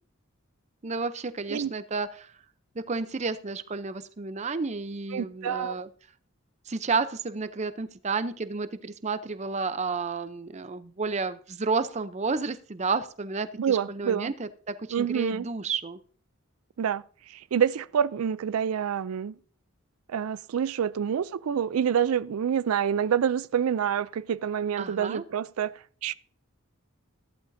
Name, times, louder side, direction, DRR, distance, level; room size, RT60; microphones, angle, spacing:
voice 1, 0.8-2.3 2.8-5.9 6.7-16.0 24.8-25.2, right 4 dB, 30° right, 0.6 m, -31 dB
voice 2, 5.1-5.8 13.6-14.3 14.9-15.5 16.8-19.4 20.1-25.7 26.0-26.1, right 8 dB, 90° right, 0.4 m, -27 dB
14.5 x 12.0 x 2.7 m
head